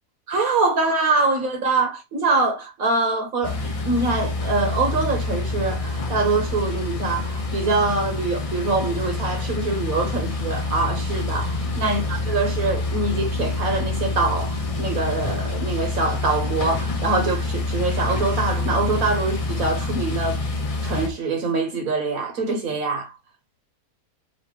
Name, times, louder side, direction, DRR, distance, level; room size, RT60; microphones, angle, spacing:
voice 1, 0.3-20.4 20.8-23.1, right 3 dB, 70° right, 1.5 m, -24 dB
sound 1, 3.4-21.1, left 3 dB, 35° left, 0.6 m, -27 dB
4.1 x 2.9 x 3.4 m
omnidirectional pair, 1.6 m